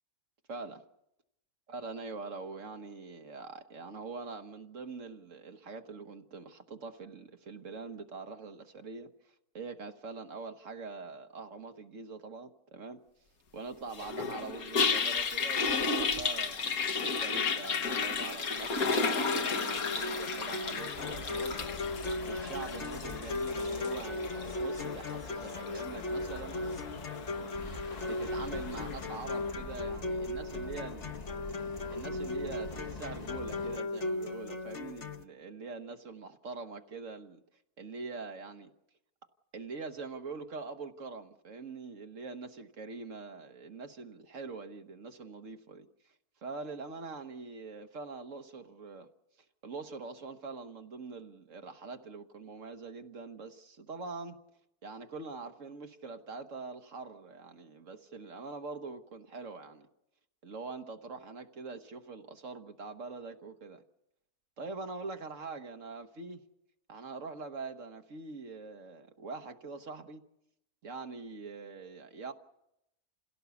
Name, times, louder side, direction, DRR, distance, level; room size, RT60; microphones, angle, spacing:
voice 1, 0.5-0.9 1.7-13.0 13.5-21.6 22.2-26.6 28.0-31.1 31.9-37.4 37.8-38.7 39.5-45.9 46.4-49.1 49.6-54.4 54.8-59.9 60.4-63.8 64.6-66.4 66.9-70.2 70.8-72.3, right 4 dB, 60° right, 1.5 m, -44 dB
Toilet flush, 13.9-29.1, left 4 dB, 70° left, 1.8 m, -34 dB
sound 1, 19.2-35.2, left 2 dB, 55° left, 1.3 m, -37 dB
sound 2, 20.9-33.8, left 3 dB, 30° left, 1.2 m, -44 dB
27.5 x 17.0 x 7.0 m
omnidirectional pair, 1.6 m